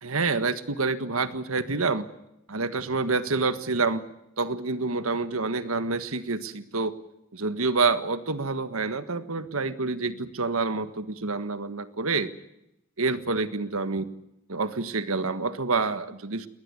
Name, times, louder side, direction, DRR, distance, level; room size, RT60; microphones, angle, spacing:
voice 1, 0.0-2.1 2.5-4.0 4.4-6.9 7.3-12.3 13.0-14.1 14.5-16.5, right 3 dB, 85° right, 12 dB, 1.5 m, -27 dB
21.0 x 19.0 x 9.8 m, 0.84 s
head